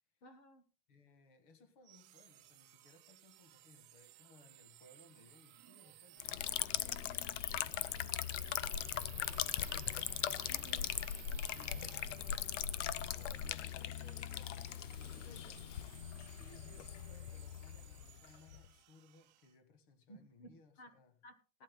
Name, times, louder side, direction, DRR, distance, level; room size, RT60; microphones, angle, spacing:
voice 1, 0.2-0.6 10.5-10.9 15.2-15.7 20.1-21.0 21.2-21.6, equal, 20° left, 0.9 m, -57 dB
voice 2, 0.9-10.4 10.8-12.2 12.7-14.8 16.0-21.2, left 3 dB, 40° left, 1.8 m, -64 dB
sound 1, 1.8-19.5, right 17 dB, 35° right, 1.0 m, -57 dB
Liquid, 6.2-18.7, left 11 dB, 65° left, 0.6 m, -40 dB
19.5 x 12.0 x 2.3 m
supercardioid pair, 175°, 40 cm